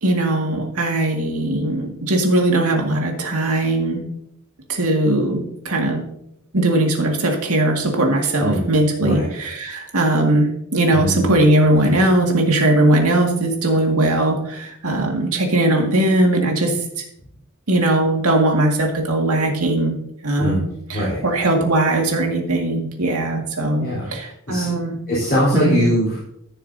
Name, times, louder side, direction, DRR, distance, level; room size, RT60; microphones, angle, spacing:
voice 1, 0.0-4.0 4.7-6.0 6.5-16.7 17.7-20.0 20.2-25.0 25.5-25.8, right 1 dB, 85° right, 2 dB, 1.9 m, -19 dB
voice 2, 10.9-11.3 11.9-12.0 20.4-21.2 23.8-24.1 24.5-24.7 25.1-26.3, equal, 45° left, -9 dB, 3.6 m, -22 dB
14.5 x 6.8 x 2.7 m, 0.74 s
head